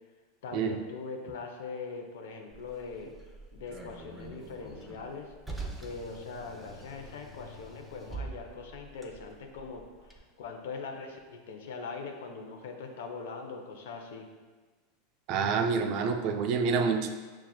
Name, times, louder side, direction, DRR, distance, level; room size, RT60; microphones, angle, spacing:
voice 1, 0.4-3.1 3.5-5.3 5.8-14.3, left 4 dB, 75° left, 3 dB, 0.5 m, -41 dB
Car, 2.5-10.2, right 2 dB, 5° right, 0.6 m, -45 dB
voice 2, 15.3-17.1, right 5 dB, 55° right, 6 dB, 0.4 m, -27 dB
5.9 x 2.3 x 2.3 m, 1.4 s
hypercardioid pair, 100°, 0 cm